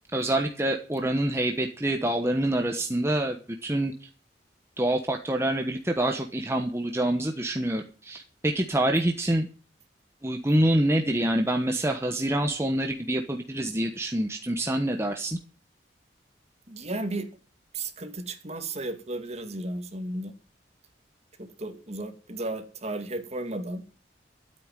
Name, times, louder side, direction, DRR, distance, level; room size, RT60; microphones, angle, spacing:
voice 1, 0.1-4.1 4.8-9.5 10.2-15.4, right 1 dB, 15° right, 3 dB, 1.1 m, -26 dB
voice 2, 16.7-17.3 17.7-20.3 21.4-23.8, right 2 dB, 35° right, 6 dB, 2.4 m, -34 dB
13.0 x 8.8 x 9.0 m, 0.38 s
head